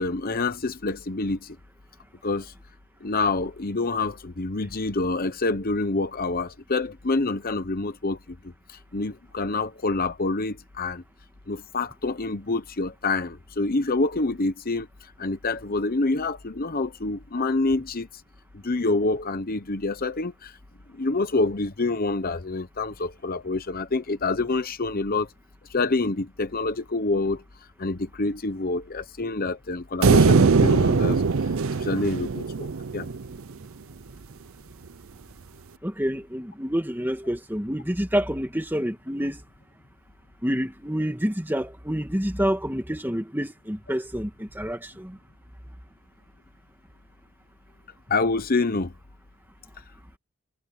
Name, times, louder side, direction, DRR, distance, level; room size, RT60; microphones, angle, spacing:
voice 1, 0.0-1.6 2.2-2.5 3.0-8.2 8.9-11.0 11.5-14.9 15.2-18.1 18.6-20.5 20.9-25.3 25.7-27.4 27.8-31.2 31.8-32.7 32.9-33.1 48.1-48.9, left 3 dB, 40° left, 0.9 m, -27 dB
sound 1, 30.0-33.4, right 4 dB, 65° right, 0.6 m, -20 dB
voice 2, 35.8-39.4 40.4-45.2, equal, 10° right, 2.2 m, -28 dB
head